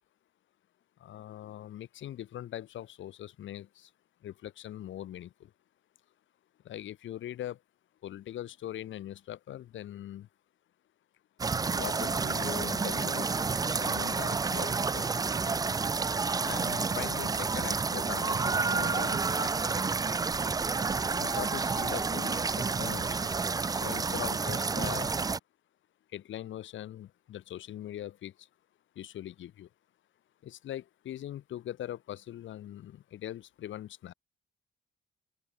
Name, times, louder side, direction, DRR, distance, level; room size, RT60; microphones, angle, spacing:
voice 1, 1.0-3.9 4.2-5.3 6.6-7.6 8.0-10.3 11.8-13.3 13.7-15.1 16.4-19.7 21.2-22.5 22.8-23.3 23.7-25.1 26.1-28.3 29.0-29.7 30.4-34.1, left 12 dB, 75° left, 2.6 m, -41 dB
sound 1, 11.4-25.4, right 4 dB, 20° right, 0.4 m, -30 dB
open air
cardioid pair, 90°, 20 cm